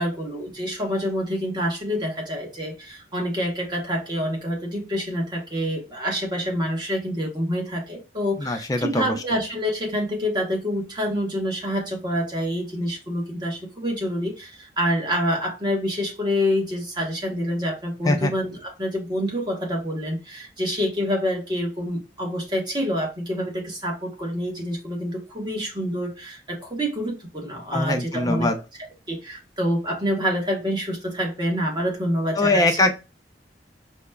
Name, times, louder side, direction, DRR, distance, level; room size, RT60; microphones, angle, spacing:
voice 1, 0.0-28.5 28.8-32.8, equal, 25° right, 0 dB, 0.9 m, -27 dB
voice 2, 8.4-9.1 18.0-18.3 27.7-28.6 32.4-32.9, left 2 dB, 20° left, 5 dB, 0.4 m, -22 dB
4.8 x 2.1 x 2.2 m, 0.29 s
head